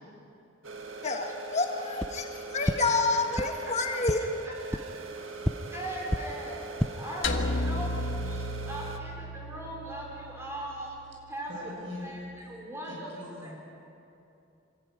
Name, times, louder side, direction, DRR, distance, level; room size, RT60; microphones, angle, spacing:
sound 1, 0.6-9.0, right 3 dB, 80° right, 1.7 m, -41 dB
voice 1, 1.0-4.2, left 3 dB, 35° left, 3 dB, 1.5 m, -29 dB
sound 2, 2.0-2.1 2.6-2.7 3.3-3.4 4.0-4.1 4.7-4.8 5.4-5.5 6.1-6.2 6.6-6.9, equal, 5° left, 0.5 m, -28 dB
voice 2, 3.1-3.7 4.5-4.6 5.7-6.6 7.0-11.0 11.3-13.1 13.4-13.6, equal, 15° right, -3 dB, 4.9 m, -40 dB
sound 3, 7.2-11.6, left 1 dB, 70° left, 1.6 m, -34 dB
voice 3, 11.5-12.3 12.8-13.6, left 1 dB, 60° right, -1 dB, 6.9 m, -42 dB
26.5 x 14.5 x 9.4 m, 2.7 s
head